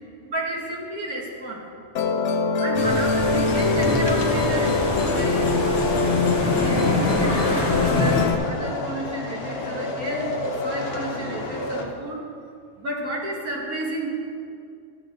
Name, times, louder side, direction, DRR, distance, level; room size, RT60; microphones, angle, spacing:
voice 1, 0.2-1.6 2.6-6.0 6.6-10.4 10.6-12.2 12.8-14.1, right 2 dB, 75° right, -2 dB, 2.2 m, -31 dB
Musical instrument, 2.0-8.4, left 4 dB, 65° left, 0.7 m, -23 dB
sound 1, 2.7-8.3, left 2 dB, 45° left, 1.8 m, -25 dB
sound 2, 3.7-11.9, left 3 dB, 85° left, 1.6 m, -30 dB
13.5 x 8.0 x 3.8 m, 2.3 s
omnidirectional pair, 1.5 m